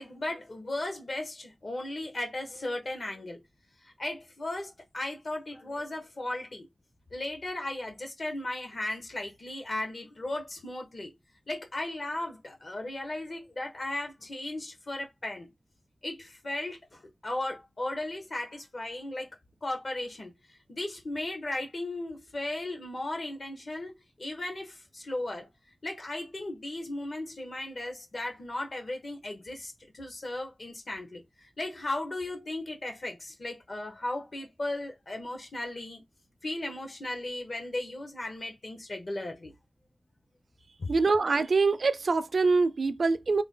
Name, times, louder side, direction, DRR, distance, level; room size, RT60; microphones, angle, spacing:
voice 1, 0.0-3.4 4.0-6.7 7.1-11.1 11.5-15.5 16.0-19.3 19.6-20.3 20.7-25.5 25.8-36.0 36.4-39.5, left 1 dB, 55° left, 1.1 m, -36 dB
voice 2, 40.9-43.4, right 4 dB, 70° right, 0.3 m, -24 dB
3.4 x 2.2 x 3.7 m
wide cardioid pair, 95°, 0 cm